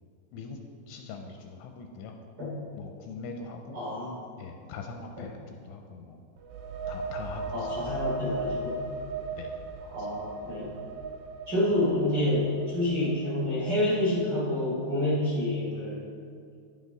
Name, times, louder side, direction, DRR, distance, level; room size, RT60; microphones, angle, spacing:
voice 1, 0.9-2.2 2.7-3.8 4.4-5.3 5.7-6.2 6.9-8.0 9.4-9.5 10.0-10.1, left 4 dB, 80° left, 3 dB, 2.8 m, -42 dB
voice 2, 3.7-4.2 5.2-5.3 7.5-8.8 9.9-10.7 11.5-16.1, left 1 dB, 25° right, -8 dB, 2.4 m, -28 dB
sound 1, 6.4-14.0, right 3 dB, 90° right, 3.3 m, -37 dB
10.5 x 9.4 x 4.0 m, 2.3 s
omnidirectional pair, 5.5 m